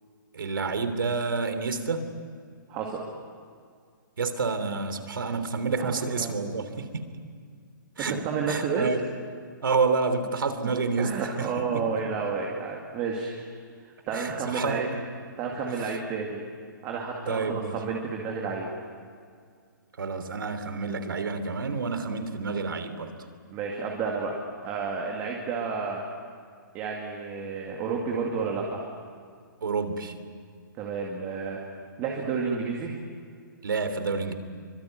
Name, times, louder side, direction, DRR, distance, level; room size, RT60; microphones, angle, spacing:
voice 1, 0.3-2.1 4.2-7.1 8.0-8.2 8.5-9.0 9.6-11.1 11.4-11.5 11.7-11.8 14.1-15.0 15.8-15.9 17.3-17.8 20.0-23.1 29.6-30.1 33.6-34.3, right 4 dB, 85° right, 10 dB, 3.2 m, -29 dB
voice 2, 2.7-3.0 5.8-6.3 8.0-8.8 11.0-13.4 14.1-14.8 15.4-16.4 16.8-18.7 23.5-24.4 24.6-26.0 26.7-28.9 30.8-31.6 32.0-32.9, right 5 dB, 20° right, -1 dB, 2.2 m, -31 dB
25.0 x 24.5 x 9.3 m, 2.1 s
hypercardioid pair, 170°, 11 cm